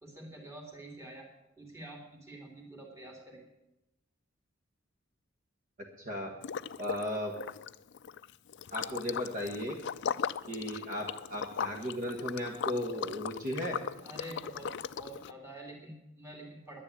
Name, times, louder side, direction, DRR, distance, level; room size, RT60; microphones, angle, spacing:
voice 1, 0.0-1.3 1.6-3.4 14.0-14.7 15.0-16.8, right 1 dB, 15° right, -1 dB, 2.8 m, -47 dB
voice 2, 6.0-6.3 6.8-7.3 8.7-9.8 10.5-13.8, equal, 40° right, 0 dB, 1.5 m, -36 dB
Liquid, 6.4-7.1 7.3-15.3, left 7 dB, 60° left, 0.4 m, -38 dB
10.5 x 10.0 x 8.5 m, 0.94 s
head